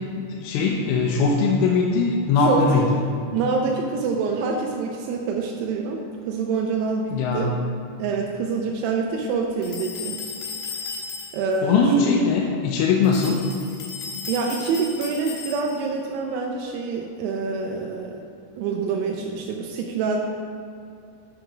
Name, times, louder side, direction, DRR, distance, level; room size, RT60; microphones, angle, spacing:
voice 1, 0.2-2.8 7.1-7.5 11.6-13.4, left 4 dB, 90° left, -2 dB, 3.3 m, -20 dB
voice 2, 2.4-2.9 3.3-6.0 6.3-7.5 8.0-10.2 11.3-12.2 14.3-18.2 18.6-20.2, right 4 dB, 80° right, 0 dB, 2.4 m, -26 dB
sound 1, 9.6-11.6 13.0-15.9, left 5 dB, 65° left, 2.5 m, -35 dB
9.1 x 5.6 x 6.0 m, 2.5 s
omnidirectional pair, 5.6 m